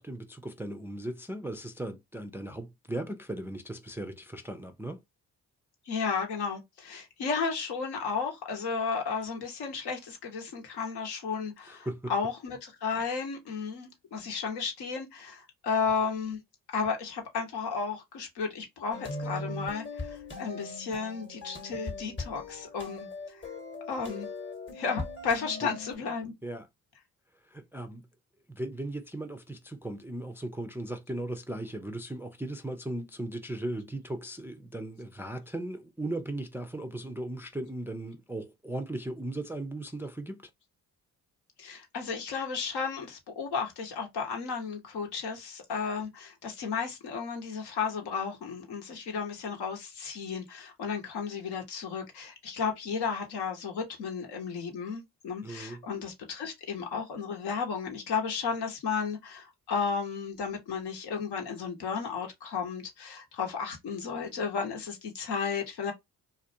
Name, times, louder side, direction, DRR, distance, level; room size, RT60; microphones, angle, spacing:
voice 1, 0.0-5.0 11.6-12.1 25.6-25.7 26.4-26.7 27.4-28.1 28.5-40.5 55.4-55.9, right 1 dB, 5° right, 0.3 m, -37 dB
voice 2, 5.9-16.4 16.7-23.4 23.9-24.3 24.7-26.3 41.6-65.9, left 5 dB, 75° left, 0.9 m, -33 dB
sound 1, 18.9-26.0, left 2 dB, 30° left, 0.9 m, -40 dB
2.4 x 2.1 x 2.6 m
hypercardioid pair, 45°, 40 cm